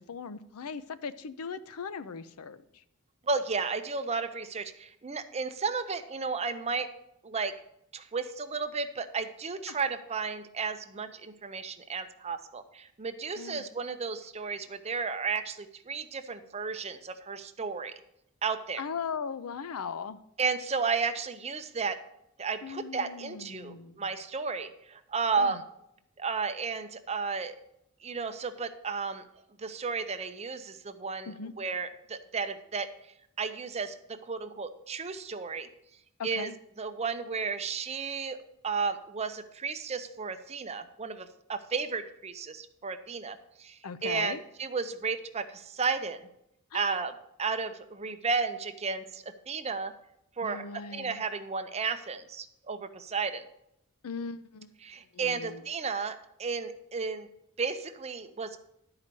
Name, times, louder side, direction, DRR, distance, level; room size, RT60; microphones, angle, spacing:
voice 1, 0.0-2.6 9.7-9.8 13.4-13.7 18.8-20.2 22.6-24.0 25.4-25.6 31.3-31.5 36.2-36.5 43.8-44.4 46.7-47.0 50.4-51.2 54.0-54.7 55.1-55.6, left 6 dB, 85° left, 14 dB, 0.5 m, -38 dB
voice 2, 3.2-6.9 7.2-7.5 7.9-17.9 18.4-18.8 20.4-22.0 22.4-25.6 26.2-27.5 28.0-29.2 29.6-32.9 33.4-35.7 36.2-36.5 36.8-46.3 46.7-47.1 47.4-49.9 50.4-53.4 54.8-57.3 57.6-58.6, right 5 dB, 30° right, 8 dB, 0.6 m, -33 dB
11.0 x 4.9 x 6.7 m, 0.79 s
head